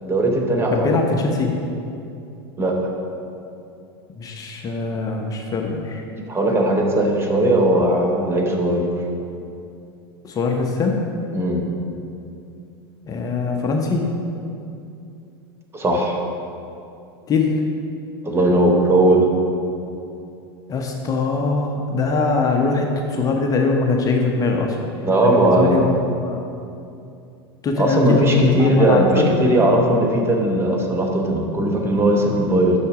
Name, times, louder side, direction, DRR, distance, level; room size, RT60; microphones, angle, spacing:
voice 1, 0.0-1.0 2.6-2.9 6.3-8.9 11.3-11.6 15.7-16.2 18.2-19.3 25.0-25.8 27.8-32.7, right 1 dB, 20° right, 1 dB, 1.0 m, -18 dB
voice 2, 0.7-1.5 4.2-6.0 10.2-11.3 13.0-14.1 17.3-17.6 20.7-24.8 25.2-26.4 27.6-29.4, left 3 dB, 25° left, 2 dB, 0.8 m, -22 dB
6.9 x 5.8 x 4.9 m, 2.6 s
hypercardioid pair, 110°, 13 cm